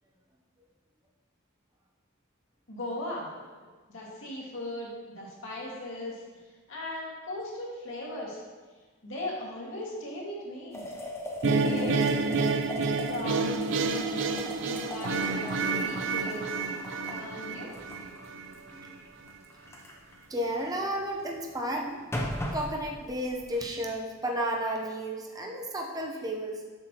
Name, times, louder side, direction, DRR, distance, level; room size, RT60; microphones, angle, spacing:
voice 1, 2.7-3.3 3.9-6.2 6.7-8.4 9.0-10.9 11.4-12.0 13.1-14.2 14.6-16.6 17.1-17.7, left 1 dB, 80° left, -4 dB, 2.0 m, -38 dB
sound 1, 10.7-21.2 21.6-23.8, left 1 dB, 15° left, 0.7 m, -40 dB
sound 2, 11.4-18.5, right 4 dB, 65° right, 0.4 m, -29 dB
voice 2, 17.6-18.0 18.7-18.9 20.3-22.0 22.5-26.6, right 1 dB, 20° right, 0 dB, 0.8 m, -33 dB
7.6 x 6.1 x 3.0 m, 1.3 s
head